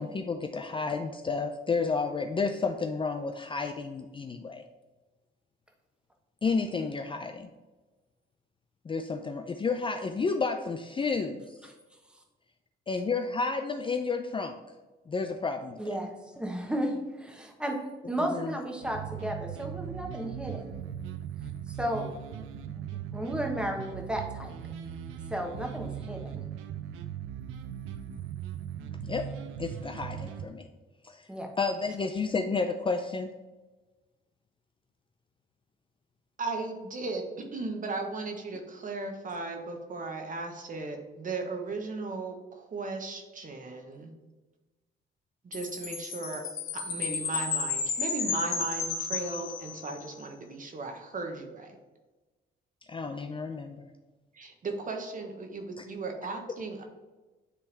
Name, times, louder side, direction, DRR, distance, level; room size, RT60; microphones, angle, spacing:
voice 1, 0.0-4.6 6.4-7.5 8.9-11.4 12.9-14.6 15.1-16.0 18.3-18.6 29.0-29.3 29.6-30.7 31.0-31.2 31.6-33.3 52.9-53.9 55.8-55.9, left 4 dB, 25° left, 6 dB, 0.4 m, -31 dB
voice 2, 15.8-16.1 16.3-17.8 18.1-20.8 21.7-22.1 23.1-24.5 25.3-26.4 31.3-31.5, equal, 5° right, 2 dB, 1.2 m, -33 dB
sound 1, 18.8-30.5, right 9 dB, 90° right, 0.5 m, -39 dB
voice 3, 36.4-37.3 37.5-44.1 45.4-46.4 46.7-51.7 54.3-56.8, right 3 dB, 40° right, 4 dB, 1.1 m, -36 dB
Chime, 45.5-50.0, left 5 dB, 85° left, 1.3 m, -33 dB
9.9 x 3.4 x 3.4 m, 1.2 s
cardioid pair, 90°, 20 cm